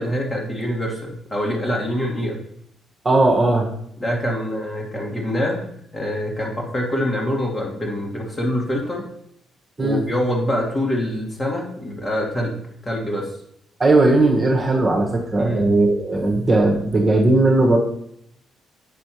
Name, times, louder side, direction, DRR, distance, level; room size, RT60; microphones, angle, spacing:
voice 1, 0.0-2.4 4.0-5.7 5.9-9.0 9.8-12.6 12.8-13.3 15.4-15.7, equal, 25° left, -1 dB, 2.0 m, -25 dB
voice 2, 3.0-3.7 9.8-10.0 13.8-17.8, right 2 dB, 25° right, -1 dB, 1.5 m, -17 dB
7.9 x 6.1 x 3.1 m, 0.71 s
figure-of-eight pair, 45°, 0 cm